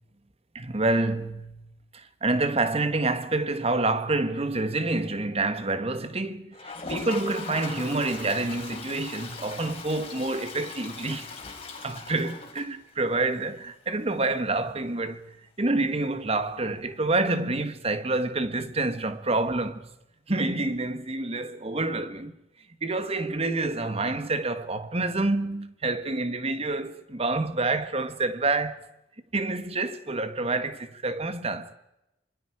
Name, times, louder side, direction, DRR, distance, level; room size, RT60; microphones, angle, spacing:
voice 1, 0.5-1.6 1.9-11.3 11.8-19.9 20.3-22.3 22.8-28.9 29.3-31.7, right 2 dB, 35° right, 1.5 m, -28 dB
Toilet flush, 6.5-13.2 13.6-13.7 13.9-14.0 14.2-14.3 16.9-17.0 18.3-18.4, left 4 dB, 35° left, 4.4 m, -40 dB
26.5 x 24.0 x 5.0 m
head